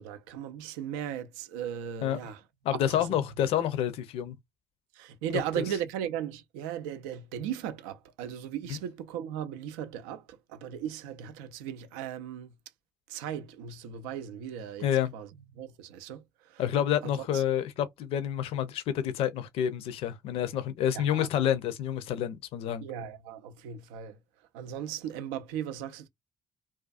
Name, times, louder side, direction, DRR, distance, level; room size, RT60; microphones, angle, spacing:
voice 1, 0.0-2.4 2.7-3.2 4.9-12.5 13.1-15.3 15.6-16.6 17.0-17.4 20.9-21.3 22.8-24.2 24.5-26.1, right 9 dB, 80° right, 0.4 m, -37 dB
voice 2, 2.6-4.4 5.6-5.7 8.7-8.8 14.8-15.1 16.6-22.8, left 10 dB, 70° left, 0.5 m, -28 dB
2.4 x 2.3 x 2.4 m
hypercardioid pair, 50°, 10 cm